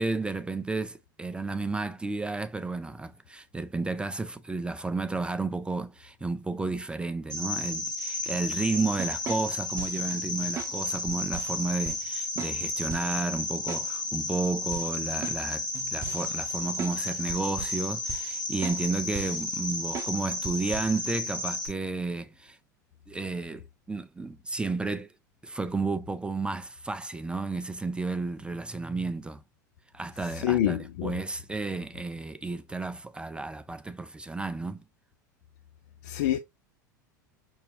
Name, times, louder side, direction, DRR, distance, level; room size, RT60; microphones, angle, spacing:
voice 1, 0.0-22.6 23.1-25.1 25.4-29.4 29.9-34.8, right 3 dB, 10° right, 0.4 m, -32 dB
Cricket, 7.3-21.7, left 2 dB, 80° left, 2.6 m, -33 dB
sound 1, 9.0-10.1 10.6-10.7 11.1-11.6 11.8-12.0 12.4-12.6 12.9-13.2 13.7-13.9 14.2-14.3 14.7-17.0 17.3-17.8 18.1-18.4 18.6-18.8 19.1-19.4 19.9-20.2 20.4-21.0, right 6 dB, 30° right, 0.8 m, -39 dB
voice 2, 30.3-31.2 36.0-36.4, left 11 dB, 60° left, 0.5 m, -27 dB
6.2 x 2.7 x 2.5 m
figure-of-eight pair, 80°, 10 cm